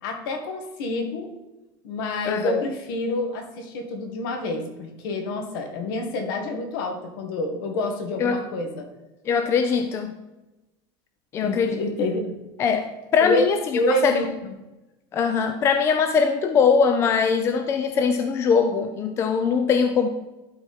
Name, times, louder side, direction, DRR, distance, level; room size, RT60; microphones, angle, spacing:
voice 1, 0.0-1.3 1.8-8.9 11.4-12.2 13.2-13.5 13.7-14.3, left 1 dB, 65° left, 4 dB, 1.9 m, -27 dB
voice 2, 2.3-2.6 8.2-8.4 9.3-10.2 11.3-11.8 12.6-14.2 15.1-20.1, left 6 dB, 20° left, 7 dB, 0.5 m, -22 dB
12.0 x 4.6 x 4.3 m, 1.0 s
cardioid pair, 175°, 12 cm